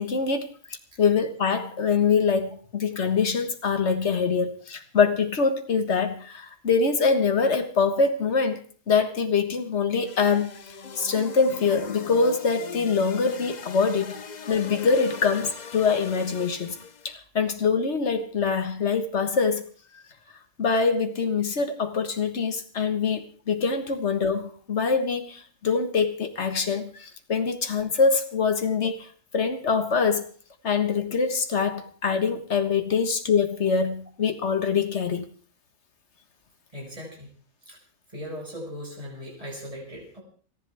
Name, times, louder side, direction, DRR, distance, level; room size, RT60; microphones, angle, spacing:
voice 1, 0.0-8.6 8.9-10.5 11.0-14.2 14.5-16.8 17.1-19.7 20.6-30.3 30.6-35.3, left 5 dB, 60° left, 1.8 m, -24 dB
sound 1, 10.0-17.1, left 6 dB, 40° left, 0.8 m, -40 dB
voice 2, 36.7-37.3 37.6-37.8 38.1-40.2, equal, 25° right, 5.6 m, -38 dB
29.5 x 11.0 x 3.5 m
omnidirectional pair, 1.4 m